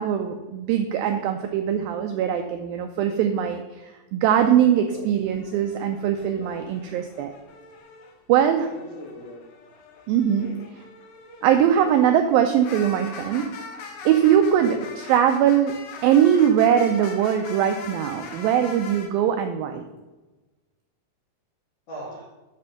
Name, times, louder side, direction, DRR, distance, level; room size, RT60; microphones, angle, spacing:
voice 1, 0.0-7.3 8.3-8.7 10.1-10.5 10.7-10.8 11.4-13.5 14.1-15.8 16.0-19.8, right 9 dB, 85° right, 6 dB, 2.1 m, -21 dB
sound 1, 5.2-8.1 8.6-19.1, left 4 dB, 90° left, 3.3 m, -42 dB
voice 2, 8.4-9.4 10.4-10.5 14.5-14.8 21.9-22.2, equal, 60° left, -3 dB, 1.8 m, -39 dB
8.0 x 4.3 x 6.3 m, 1.2 s
omnidirectional pair, 4.7 m